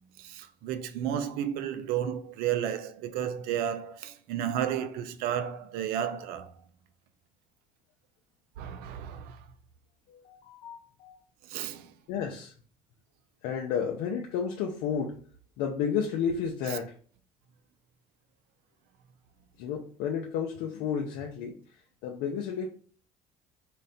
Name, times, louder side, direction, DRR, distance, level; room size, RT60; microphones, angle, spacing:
voice 1, 0.2-6.5 8.6-9.4 11.4-11.9, right 9 dB, 80° right, 0.4 m, -32 dB
voice 2, 10.1-11.1 12.1-12.5 13.4-15.1 15.6-16.9 19.6-21.6 22.0-22.7, left 7 dB, 85° left, 0.5 m, -32 dB
3.9 x 2.1 x 3.9 m
supercardioid pair, 80°, 16 cm